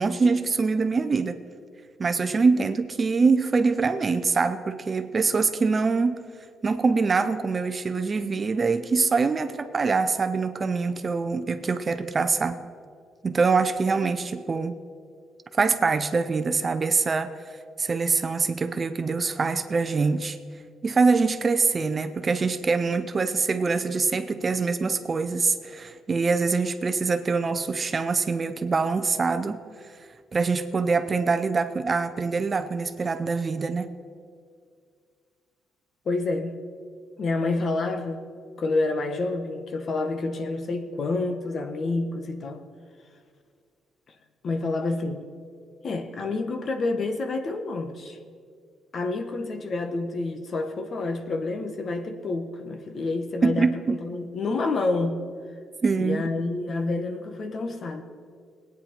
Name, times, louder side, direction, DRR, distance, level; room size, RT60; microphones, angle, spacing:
voice 1, 0.0-1.4 2.0-6.3 6.6-12.6 13.2-14.8 15.5-17.3 17.8-20.4 20.8-29.6 30.3-33.9 53.4-54.0 55.8-56.2, right 4 dB, 35° right, 9 dB, 0.6 m, -24 dB
voice 2, 36.0-36.6 37.2-38.2 38.6-42.6 44.4-45.2 45.8-48.2 48.9-55.2 56.0-58.0, left 3 dB, 50° left, 7 dB, 1.2 m, -28 dB
19.5 x 9.4 x 4.5 m, 2.2 s
cardioid pair, 90°, 0 cm